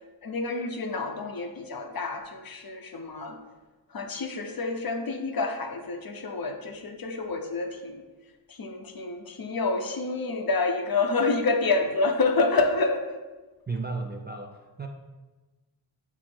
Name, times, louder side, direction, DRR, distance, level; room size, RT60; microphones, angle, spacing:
voice 1, 0.2-3.4 3.9-8.0 8.5-13.0, left 3 dB, 45° left, 5 dB, 0.7 m, -28 dB
voice 2, 13.7-14.9, right 3 dB, 25° right, 3 dB, 0.4 m, -34 dB
5.9 x 2.0 x 4.3 m, 1.2 s
cardioid pair, 50°, 48 cm